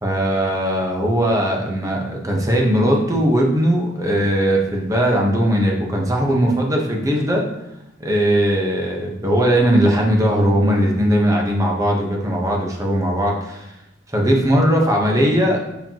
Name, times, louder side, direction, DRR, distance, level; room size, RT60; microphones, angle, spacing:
voice 1, 0.0-7.5 8.0-13.7 14.1-15.6, equal, 15° right, 0 dB, 1.0 m, -19 dB
7.3 x 4.9 x 2.9 m, 0.88 s
head